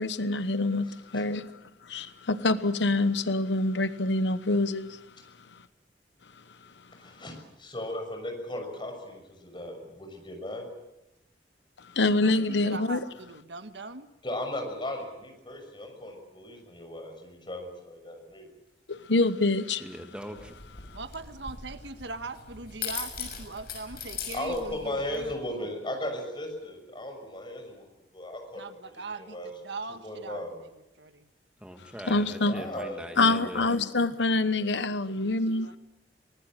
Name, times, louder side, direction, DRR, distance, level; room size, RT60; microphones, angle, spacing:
voice 1, 0.0-1.5 1.8-5.0 11.9-13.0 18.9-19.8 32.1-32.6 33.2-35.7, left 2 dB, 90° left, 1.1 m, -26 dB
voice 2, 0.9-1.2 7.0-10.7 14.2-18.5 24.3-27.9 28.1-28.6 29.1-29.5 30.0-30.5 32.5-33.0, left 1 dB, 25° left, 6.3 m, -36 dB
voice 3, 12.0-14.1 20.9-25.7 28.5-30.7 31.0-31.3 35.2-35.8, right 3 dB, 85° right, 1.6 m, -41 dB
voice 4, 19.8-20.5 31.6-33.8, equal, 5° right, 1.6 m, -41 dB
sound 1, 20.4-25.3, left 6 dB, 60° left, 6.6 m, -40 dB
24.0 x 19.5 x 8.9 m
head